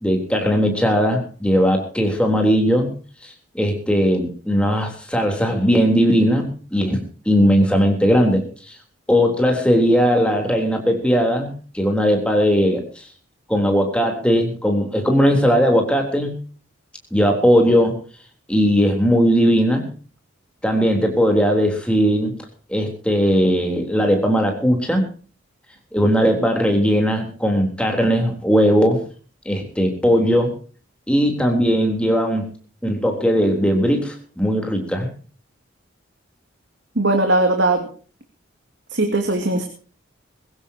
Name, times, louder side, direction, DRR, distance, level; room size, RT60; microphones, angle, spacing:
voice 1, 0.0-2.9 3.2-7.0 7.3-8.8 9.1-13.1 13.5-16.3 17.1-18.0 18.5-19.9 20.6-22.3 22.7-25.0 25.9-29.0 29.5-30.5 31.1-32.5 32.8-35.1, equal, 5° left, 3 dB, 3.6 m, -18 dB
voice 2, 37.0-37.9 38.9-39.7, right 2 dB, 65° right, 4 dB, 2.5 m, -19 dB
22.0 x 15.5 x 2.9 m, 0.40 s
head